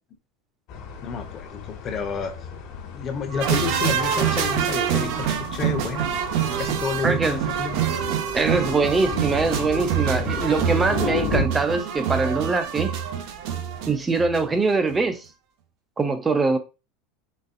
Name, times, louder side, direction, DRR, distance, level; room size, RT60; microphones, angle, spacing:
sound 1, 0.7-11.4, left 7 dB, 55° left, 1.2 m, -34 dB
voice 1, 1.0-2.4 2.9-6.1 6.6-7.9, left 6 dB, 35° left, 0.8 m, -30 dB
sound 2, 3.3-13.1, right 4 dB, 80° right, 1.1 m, -39 dB
sound 3, 3.4-14.6 14.9-15.0, right 9 dB, 60° right, 0.7 m, -26 dB
voice 2, 7.0-7.4 8.3-12.9 13.9-15.2 16.0-16.6, right 3 dB, 15° right, 0.5 m, -23 dB
4.1 x 3.2 x 2.5 m
supercardioid pair, 135°, 0 cm